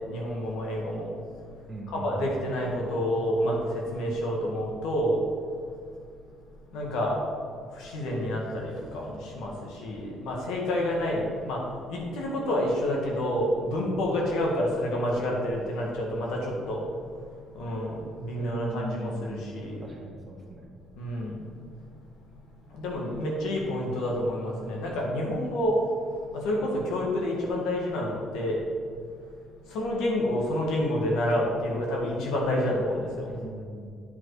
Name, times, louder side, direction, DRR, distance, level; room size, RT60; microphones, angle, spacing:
voice 1, 0.1-1.1 1.9-5.2 6.7-7.2 7.8-9.5 9.8-11.6 11.9-16.8 17.5-19.8 21.0-21.3 22.7-25.7 26.3-28.6 29.7-33.3, left 1 dB, 85° left, -2 dB, 1.9 m, -28 dB
voice 2, 1.7-2.3 18.4-19.5 19.8-20.7 33.2-33.9, right 2 dB, 25° right, -1 dB, 1.4 m, -38 dB
9.3 x 5.2 x 4.9 m, 2.2 s
cardioid pair, 160°, 0 cm